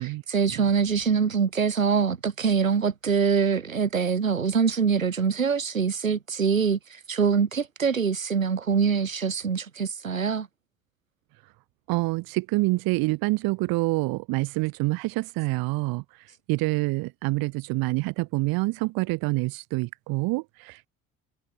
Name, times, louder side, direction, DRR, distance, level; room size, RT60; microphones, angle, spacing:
voice 1, 0.3-6.8 7.1-10.5, right 6 dB, 85° right, 6.9 m, -24 dB
voice 2, 11.9-16.0 16.5-20.9, right 24 dB, 60° right, 4.6 m, -26 dB
figure-of-eight pair, 50°, 39 cm